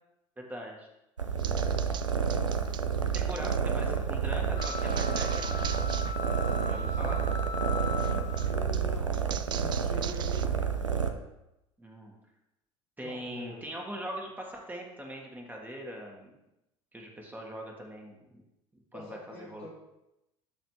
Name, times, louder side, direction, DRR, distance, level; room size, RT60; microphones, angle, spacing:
voice 1, 0.4-0.9 1.4-1.6 3.1-5.7 6.6-7.3 11.8-12.1 13.0-16.3 16.9-18.4 18.7-19.7, equal, 10° right, 0 dB, 1.6 m, -41 dB
sound 1, 1.2-11.1, right 6 dB, 85° right, 0.5 m, -29 dB
sound 2, 1.4-3.6 4.6-6.2 6.5-6.9 8.0-10.5, right 9 dB, 30° right, 0.4 m, -42 dB
voice 2, 3.3-3.9 6.9-7.2 8.4-10.6 13.0-13.6 18.9-19.7, left 2 dB, 90° left, -10 dB, 2.3 m, -45 dB
sound 3, 4.5-8.6, left 5 dB, 45° left, 0.7 m, -39 dB
11.5 x 4.1 x 3.1 m, 0.91 s
figure-of-eight pair, 70°, 16 cm